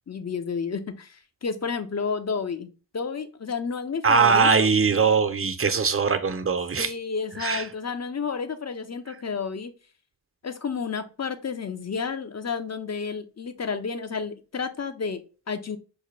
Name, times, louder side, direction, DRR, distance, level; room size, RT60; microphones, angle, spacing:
voice 1, 0.1-4.7 6.7-9.7 10.4-15.8, left 5 dB, 35° left, 0.6 m, -31 dB
voice 2, 4.0-6.9 7.4-7.6, right 5 dB, 30° right, 0.5 m, -21 dB
4.8 x 2.2 x 3.1 m
cardioid pair, 50°, 45 cm